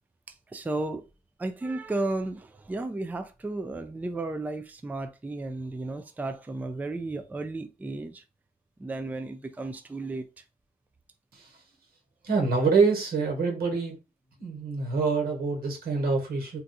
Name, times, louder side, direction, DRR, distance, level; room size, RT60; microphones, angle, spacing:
voice 1, 0.5-1.1 1.4-8.2 8.8-10.4, right 2 dB, 10° right, 0.3 m, -33 dB
voice 2, 12.2-14.0 14.4-16.6, right 4 dB, 85° right, 1.3 m, -26 dB
2.6 x 2.4 x 4.0 m
wide cardioid pair, 120°, 15 cm